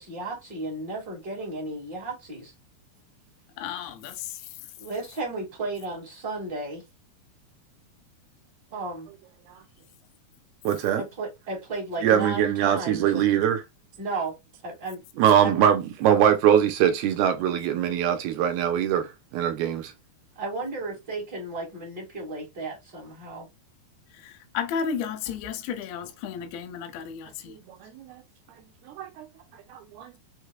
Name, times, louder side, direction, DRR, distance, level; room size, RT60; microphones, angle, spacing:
voice 1, 0.0-2.5 4.8-6.8 8.7-9.1 10.9-13.3 14.0-14.4 14.6-15.0 15.4-15.6 20.3-23.5, right 2 dB, 40° right, 1.5 m, -34 dB
voice 2, 3.6-4.5 24.1-27.6, left 7 dB, 90° left, 3.0 m, -33 dB
voice 3, 10.7-11.0 12.0-13.6 15.2-19.9 27.5-28.2 29.0-29.3 29.7-30.2, right 9 dB, 80° right, 2.3 m, -22 dB
6.4 x 3.3 x 2.2 m
omnidirectional pair, 4.9 m